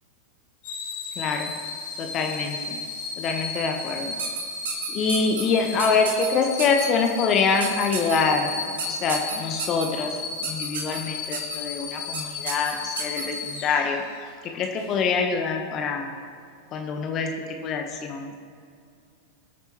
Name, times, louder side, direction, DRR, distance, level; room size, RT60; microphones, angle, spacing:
sound 1, 0.6-14.3 14.8-15.0, left 4 dB, 50° left, 2.1 m, -34 dB
voice 1, 1.2-1.5 2.0-2.8 3.2-4.1 4.9-8.6 8.9-14.0 14.4-16.1 16.7-17.3 17.6-18.3, left 5 dB, 30° left, 3 dB, 1.1 m, -25 dB
sound 2, 4.2-5.4 5.8-6.3 6.6-6.9 7.6-8.2 8.8-9.9 10.4-11.0 11.3-11.6 12.1-12.2 12.5-13.2, right 6 dB, 60° right, 1.9 m, -31 dB
22.0 x 9.4 x 3.0 m, 2.3 s
figure-of-eight pair, 90°, 0 cm